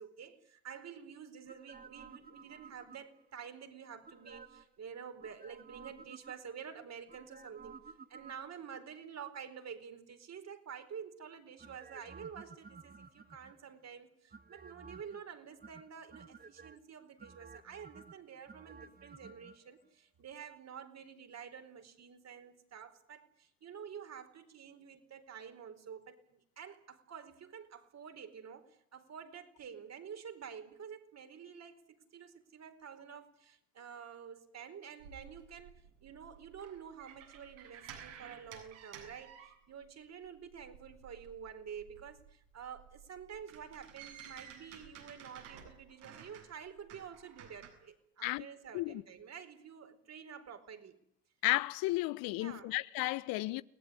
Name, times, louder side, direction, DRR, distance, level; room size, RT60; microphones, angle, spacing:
voice 1, 0.0-35.7 36.0-51.0 52.4-52.7, right 7 dB, 45° right, 4.7 m, -49 dB
sound 1, 1.5-3.3 4.0-4.8 5.2-6.6 7.1-8.8 11.6-13.7 14.3-15.2 15.6-16.8 17.2-19.6 19.8-19.9, right 5 dB, 25° right, 2.2 m, -54 dB
sound 2, 35.0-40.0 40.2-47.7, right 8 dB, 75° right, 7.9 m, -54 dB
voice 2, 51.4-53.6, left 19 dB, 65° left, 1.3 m, -33 dB
30.0 x 20.0 x 9.9 m
hypercardioid pair, 60°, 37 cm